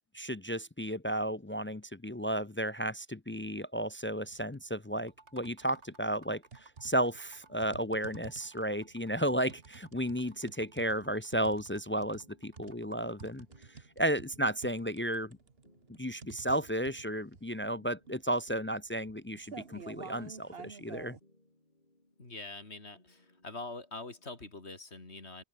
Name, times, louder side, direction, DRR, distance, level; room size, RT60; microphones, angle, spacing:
voice 1, 0.1-13.5 14.0-15.4 16.0-21.1, right 1 dB, 20° left, 0.3 m, -33 dB
sound 1, 4.2-4.6 5.0-5.9 6.5-21.2, right 5 dB, 60° right, 1.8 m, -51 dB
sound 2, 5.0-13.6, right 3 dB, 80° right, 3.2 m, -61 dB
sound 3, 7.1-24.4, left 1 dB, 40° left, 4.7 m, -68 dB
voice 2, 9.1-9.5 22.2-25.4, left 3 dB, 70° left, 3.9 m, -45 dB
open air
omnidirectional pair, 1.1 m